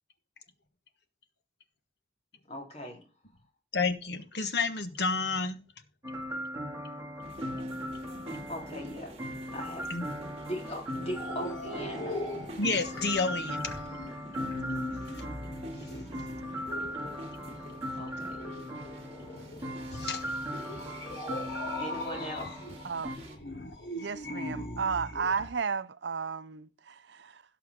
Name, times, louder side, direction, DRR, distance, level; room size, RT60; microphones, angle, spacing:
voice 1, 2.5-3.0 8.5-9.2 9.5-9.9 10.4-12.2 16.1-16.3 18.0-18.5 21.8-22.6, left 1 dB, 35° left, 3.8 m, -39 dB
voice 2, 3.7-5.6 9.9-10.3 12.6-13.8 15.8-15.9 19.4-19.5 19.9-20.3 23.5-23.7, left 4 dB, 65° left, 1.3 m, -31 dB
sound 1, 6.0-23.2, equal, 20° right, 2.4 m, -39 dB
sound 2, 7.2-23.4, right 1 dB, 35° right, 2.5 m, -48 dB
sound 3, 10.9-25.5, left 1 dB, 85° left, 4.0 m, -41 dB
voice 3, 24.0-27.4, right 5 dB, 75° right, 0.6 m, -33 dB
17.0 x 5.8 x 3.6 m
head